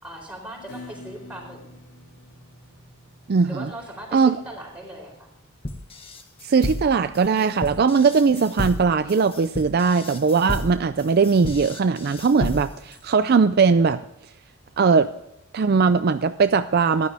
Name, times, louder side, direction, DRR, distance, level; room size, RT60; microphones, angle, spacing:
voice 1, 0.0-1.6 3.4-5.3, right 1 dB, 5° right, 4.5 m, -38 dB
Acoustic guitar / Strum, 0.7-7.9, left 1 dB, 60° left, 4.7 m, -48 dB
voice 2, 3.3-3.7 4.1-4.4 6.4-14.0 14.8-15.1 15.5-17.1, right 5 dB, 50° right, 0.4 m, -19 dB
sound 1, 5.6-12.9, left 1 dB, 30° left, 1.2 m, -32 dB
14.5 x 11.5 x 3.5 m
head